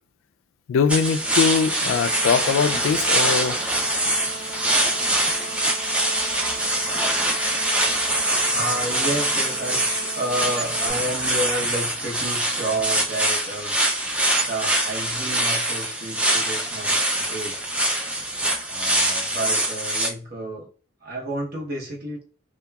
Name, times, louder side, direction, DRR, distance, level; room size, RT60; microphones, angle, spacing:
voice 1, 0.7-3.6, left 6 dB, 75° left, 0.3 m, -22 dB
sound 1, 0.9-20.1, right 1 dB, 5° right, 0.3 m, -24 dB
sound 2, 1.9-10.9, right 3 dB, 25° left, 0.9 m, -39 dB
voice 2, 8.5-17.6 18.7-20.7 21.0-22.3, right 1 dB, 50° right, 0.8 m, -31 dB
2.8 x 2.2 x 2.2 m
head